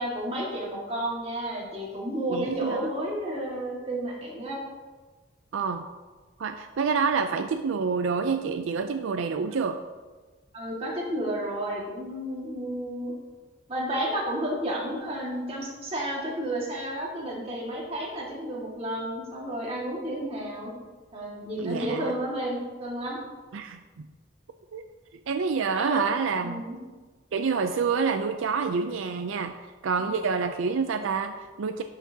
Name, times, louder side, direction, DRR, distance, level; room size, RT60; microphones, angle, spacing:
voice 1, 0.0-4.6 10.5-13.1 13.7-20.7 21.1-23.2 25.7-26.0 26.4-26.8, right 1 dB, 30° right, -4 dB, 1.9 m, -31 dB
voice 2, 2.3-2.9 5.5-5.9 6.4-9.8 21.6-22.1 23.5-24.1 24.7-24.8 25.3-26.6 27.3-31.8, right 5 dB, 75° right, 7 dB, 0.4 m, -28 dB
12.0 x 5.8 x 2.8 m, 1.3 s
head